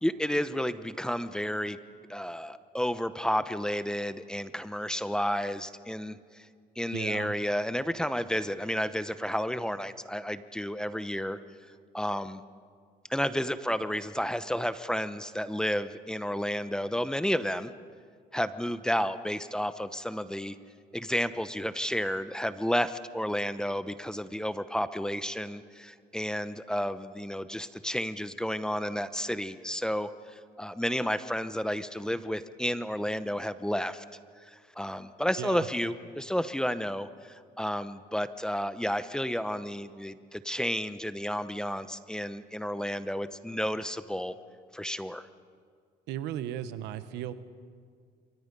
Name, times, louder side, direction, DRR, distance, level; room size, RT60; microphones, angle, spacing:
voice 1, 0.0-1.8 2.1-6.2 6.8-11.4 11.9-12.4 13.1-17.7 18.3-20.6 20.9-34.0 34.5-44.3 44.7-45.3, equal, 5° left, 13 dB, 0.8 m, -31 dB
voice 2, 6.9-7.3 35.4-35.7 46.1-47.3, right 11 dB, 90° right, 12 dB, 1.1 m, -36 dB
27.5 x 24.0 x 5.4 m, 2.1 s
cardioid pair, 110°, 17 cm